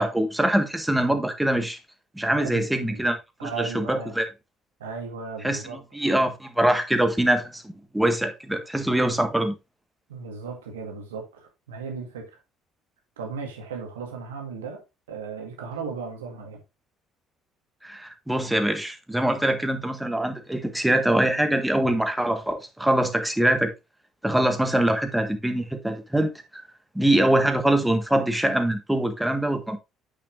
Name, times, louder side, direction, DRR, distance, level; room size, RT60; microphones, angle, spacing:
voice 1, 0.0-1.8 2.1-3.2 3.4-4.3 5.4-9.5 17.8-23.7 24.2-26.6 26.9-29.8, right 1 dB, 5° right, 1.6 m, -23 dB
voice 2, 2.3-3.0 3.4-4.2 4.8-5.8 10.1-12.3 13.2-14.8 15.1-16.6, right 5 dB, 80° right, 1.9 m, -36 dB
8.6 x 6.2 x 2.6 m
figure-of-eight pair, 55°, 0 cm